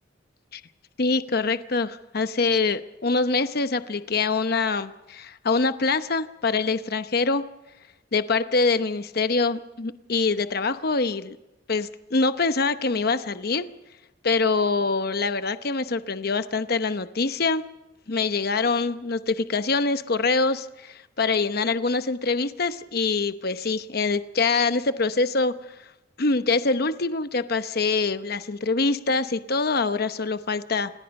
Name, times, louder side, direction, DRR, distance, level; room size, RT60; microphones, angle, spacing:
voice 1, 1.0-7.4 8.1-11.4 11.7-13.7 14.2-17.6 18.1-25.5 26.2-30.9, left 4 dB, 55° left, 11 dB, 0.9 m, -24 dB
27.5 x 20.0 x 5.4 m, 1.0 s
head